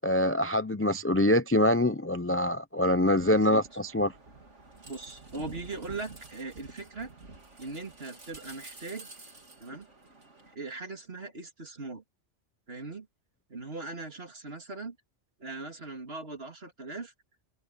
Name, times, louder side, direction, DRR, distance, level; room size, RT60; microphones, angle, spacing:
voice 1, 0.0-4.1, left 1 dB, 15° left, 0.5 m, -25 dB
sound 1, 3.1-10.5, right 3 dB, 90° right, 3.4 m, -50 dB
voice 2, 3.3-3.6 4.8-7.1 7.6-9.1 9.6-9.9 10.5-12.0 12.7-13.1 13.5-15.0 15.4-17.1, right 3 dB, 55° right, 2.9 m, -40 dB
omnidirectional pair, 1.2 m